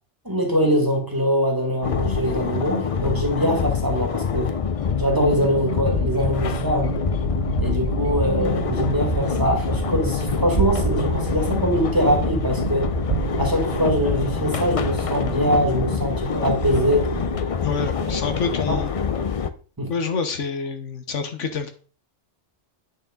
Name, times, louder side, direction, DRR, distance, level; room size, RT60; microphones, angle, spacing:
voice 1, 0.2-4.5 5.0-7.0 7.6-13.0 13.4-17.2 18.1-18.2 18.7-18.8 19.8-19.9, equal, 15° right, 2.0 m, -23 dB
sound 1, 1.8-19.5, left 6 dB, 45° left, 0.4 m, -25 dB
sound 2, 5.9-17.4, right 10 dB, 55° right, 0.6 m, -30 dB
voice 2, 17.6-18.9 19.9-21.7, left 5 dB, 90° left, 1.5 m, -27 dB
8.8 x 6.3 x 3.8 m
omnidirectional pair, 1.2 m